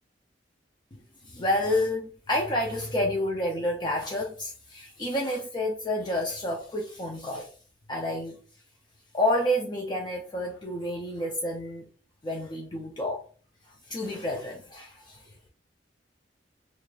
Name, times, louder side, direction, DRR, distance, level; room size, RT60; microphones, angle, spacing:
voice 1, 0.9-7.5 7.9-8.4 9.1-11.9 12.2-13.3 13.6-15.3, left 1 dB, 25° left, 0.5 m, -29 dB
6.1 x 2.4 x 2.4 m
head